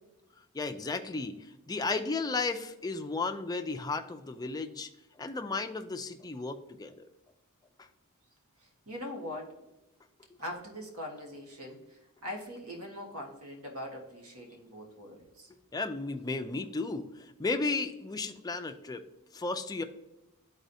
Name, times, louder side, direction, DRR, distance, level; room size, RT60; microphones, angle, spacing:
voice 1, 0.5-1.4 1.7-4.9 5.2-7.0 15.7-19.1 19.3-19.8, left 3 dB, 15° left, 6 dB, 0.4 m, -34 dB
voice 2, 8.9-9.5 10.4-15.5, left 1 dB, 75° right, 1 dB, 1.5 m, -42 dB
11.5 x 4.1 x 2.7 m, 0.96 s
head